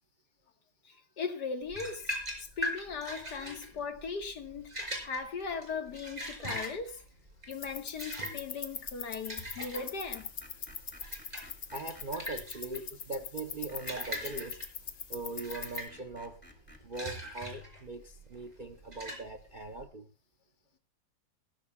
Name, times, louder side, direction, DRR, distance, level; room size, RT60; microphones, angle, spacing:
voice 1, 0.9-2.1 2.4-7.0 7.5-10.3, left 5 dB, 70° left, 2.0 m, -38 dB
sound 1, 1.7-19.8, equal, 20° right, 5.4 m, -42 dB
sound 2, 7.5-15.9, left 7 dB, 50° left, 1.2 m, -43 dB
Screech, 10.1-12.1 13.7-14.6 15.2-17.4, left 1 dB, 5° left, 2.4 m, -54 dB
voice 2, 11.7-14.7 15.1-16.4 16.8-20.1, right 2 dB, 45° right, 0.7 m, -41 dB
20.0 x 15.0 x 2.3 m
omnidirectional pair, 1.9 m